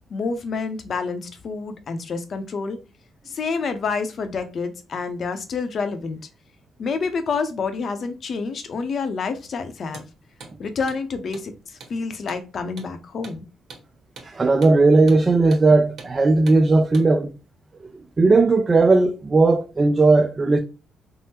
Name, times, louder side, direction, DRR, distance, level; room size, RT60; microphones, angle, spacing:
voice 1, 0.1-2.8 3.3-6.2 6.8-10.0 10.6-13.4, left 4 dB, 55° left, 0.6 m, -28 dB
Hammer, 9.8-10.1 10.4-10.5 10.9-11.0 11.3-11.5 11.8-11.9 12.3-12.4 12.8-12.9 13.2-13.4 13.7-13.8 14.2-14.3 14.6-14.8 15.1-15.2 15.5-15.7 16.0-16.1 16.5-16.6 16.9-17.1, right 4 dB, 65° right, 1.2 m, -42 dB
voice 2, 14.2-17.3 18.2-20.6, right 3 dB, 30° right, 0.3 m, -17 dB
3.5 x 2.0 x 2.8 m
cardioid pair, 90°, 0 cm